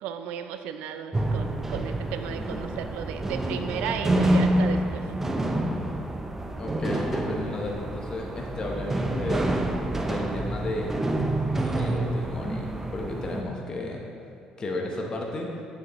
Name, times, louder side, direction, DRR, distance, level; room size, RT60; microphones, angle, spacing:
voice 1, 0.0-5.0, right 8 dB, 85° right, 8 dB, 0.5 m, -34 dB
sound 1, 1.1-13.4, right 1 dB, 15° right, 0.6 m, -27 dB
voice 2, 6.6-9.6 10.0-10.9 11.5-14.0 14.6-15.5, left 2 dB, 35° left, 0 dB, 1.0 m, -33 dB
9.6 x 6.7 x 3.1 m, 2.3 s
cardioid pair, 100°, 2 cm